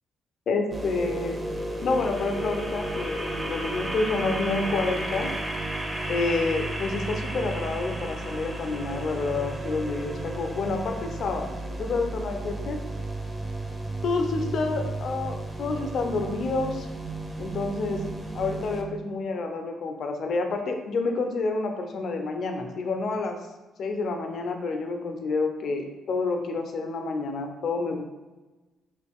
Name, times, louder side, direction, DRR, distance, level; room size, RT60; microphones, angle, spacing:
voice 1, 0.5-1.4 1.8-5.3 6.1-12.8 14.0-16.9 17.4-18.0 18.3-23.4 23.8-28.0, left 3 dB, 60° left, 4 dB, 0.5 m, -29 dB
sound 1, 0.7-18.8, right 1 dB, 20° right, 0.6 m, -33 dB
3.1 x 2.4 x 3.5 m, 1.2 s
cardioid pair, 90°, 0 cm